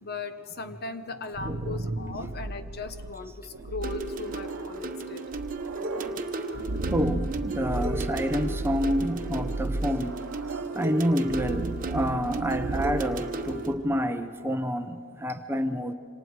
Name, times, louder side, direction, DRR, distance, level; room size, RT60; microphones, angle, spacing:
voice 1, 0.0-5.3, left 3 dB, 50° left, 10 dB, 1.0 m, -37 dB
sound 1, 1.1-14.0, right 2 dB, 80° right, 0.9 m, -35 dB
voice 2, 1.4-1.8 3.6-3.7 6.9-10.2 10.7-15.9, equal, 10° right, 8 dB, 0.7 m, -28 dB
sound 2, 3.8-13.8, right 3 dB, 40° right, 1.0 m, -35 dB
27.0 x 26.5 x 4.8 m, 2.2 s
head